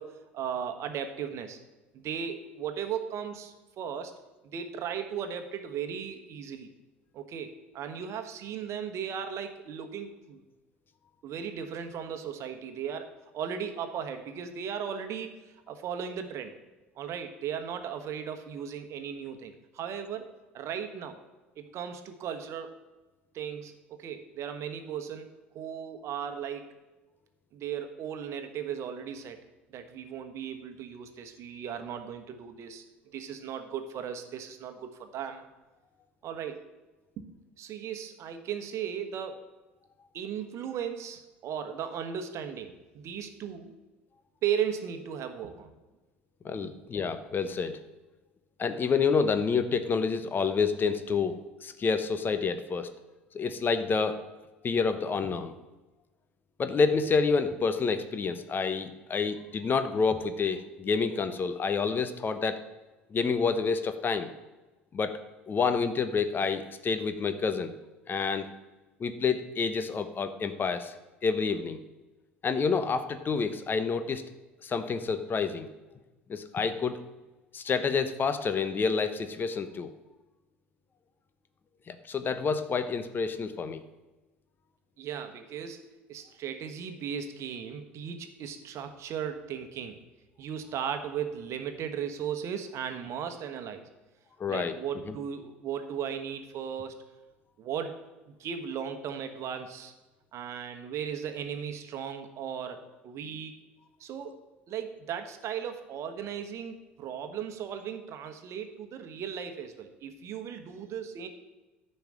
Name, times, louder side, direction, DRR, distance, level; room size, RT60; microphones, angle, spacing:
voice 1, 0.0-1.6 1.9-4.1 4.4-6.7 7.1-10.4 11.2-16.5 17.0-21.2 21.6-22.7 23.3-25.3 25.5-26.8 27.5-29.4 29.7-35.4 36.2-36.6 37.2-39.4 40.1-43.7 44.4-45.7 46.6-46.7 85.0-90.0 90.4-93.9 94.5-97.0 97.6-97.9 98.4-99.9 100.3-103.5 104.0-104.4 104.7-111.3, right 8 dB, 50° right, 7 dB, 1.3 m, -36 dB
voice 2, 46.4-47.8 48.6-51.3 51.6-52.9 53.3-54.2 54.6-55.5 56.6-62.6 63.1-64.3 64.9-65.2 65.5-67.7 68.1-68.5 69.0-70.9 71.2-71.8 72.4-74.2 74.6-75.7 76.3-77.0 77.5-79.9 81.9-83.8 94.4-94.7, left 5 dB, 35° left, 10 dB, 1.0 m, -28 dB
10.5 x 5.5 x 7.6 m, 1.1 s
hypercardioid pair, 70°, 6 cm